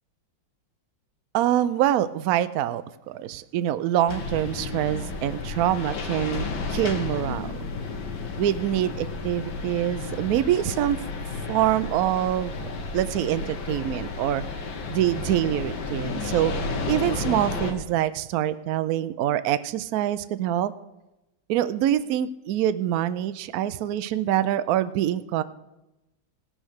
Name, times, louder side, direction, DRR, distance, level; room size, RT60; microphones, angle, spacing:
voice 1, 1.3-7.6 8.4-11.0 11.5-14.4 14.9-16.5 16.9-20.7 21.5-25.4, right 12 dB, 80° right, 14 dB, 0.8 m, -25 dB
sound 1, 4.1-17.7, left 4 dB, 75° left, 2.1 m, -32 dB
17.5 x 6.3 x 6.5 m, 0.97 s
omnidirectional pair, 2.1 m